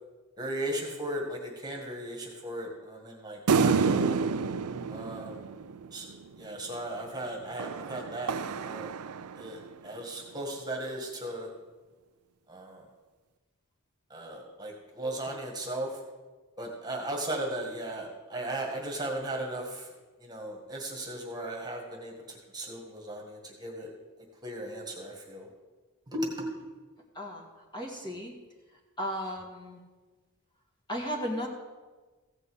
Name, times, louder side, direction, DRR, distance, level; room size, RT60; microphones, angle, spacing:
voice 1, 0.4-4.3 4.9-5.4 5.9-8.4 8.6-8.9 9.4-11.5 12.5-12.9 14.1-16.0 16.6-19.9 20.2-23.9 24.4-25.5 26.1-26.5, right 1 dB, 20° right, 1 dB, 1.8 m, -36 dB
sound 1, 3.5-6.2 7.6-9.7, right 5 dB, 85° right, 0.5 m, -29 dB
voice 2, 27.7-28.3 29.0-29.8 30.9-31.5, equal, 20° left, -1 dB, 1.8 m, -35 dB
15.5 x 5.4 x 8.0 m, 1.3 s
head